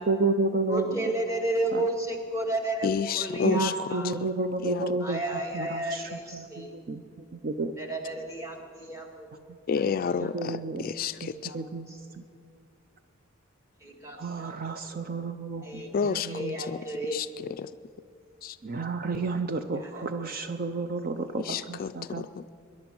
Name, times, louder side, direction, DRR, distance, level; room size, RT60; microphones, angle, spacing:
voice 1, 0.0-1.1 1.7-1.8 3.4-5.2 5.5-6.0 6.3-7.0 7.4-7.7 10.2-10.9 11.5-11.9 14.1-15.8 16.3-16.5 18.6-22.3, right 3 dB, 45° right, 9 dB, 0.6 m, -30 dB
voice 2, 0.7-4.1 5.0-6.7 7.8-9.5 11.3-11.6 11.9-12.0 13.8-14.5 15.6-17.2 19.3-19.4 19.8-20.1, right 1 dB, 15° right, 3 dB, 2.1 m, -33 dB
voice 3, 2.8-3.7 4.2-4.3 4.6-5.0 9.7-11.5 15.9-17.7 18.4-18.6 21.4-22.5, left 6 dB, 45° left, 12 dB, 0.3 m, -31 dB
22.0 x 11.0 x 6.1 m, 2.2 s
head